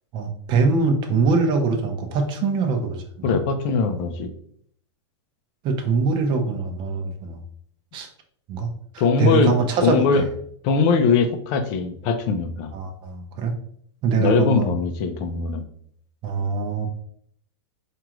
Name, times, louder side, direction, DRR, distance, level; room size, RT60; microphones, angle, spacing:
voice 1, 0.1-3.4 5.6-7.4 7.9-8.1 8.5-8.7 8.9-10.2 12.7-13.5 14.0-14.7 16.2-16.9, right 4 dB, 30° right, 4 dB, 0.7 m, -23 dB
voice 2, 3.2-4.3 9.0-9.5 9.8-10.3 10.6-12.7 14.2-15.6, left 5 dB, 40° left, 7 dB, 0.5 m, -21 dB
4.6 x 2.5 x 3.0 m, 0.64 s
hypercardioid pair, 145°, 15 cm